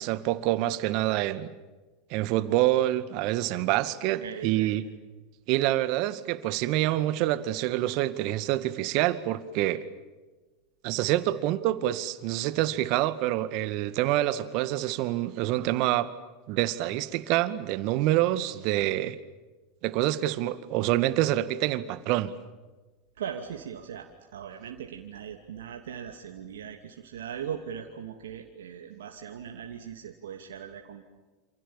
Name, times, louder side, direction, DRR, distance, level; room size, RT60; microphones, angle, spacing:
voice 1, 0.0-1.5 2.1-4.8 5.5-9.8 10.8-16.1 16.5-19.2 19.8-22.3, right 15 dB, 55° right, 14 dB, 2.1 m, -26 dB
voice 2, 4.1-4.7 23.2-31.0, right 8 dB, 75° right, 3 dB, 2.7 m, -39 dB
28.5 x 28.0 x 7.4 m, 1.2 s
hypercardioid pair, 90°, 0 cm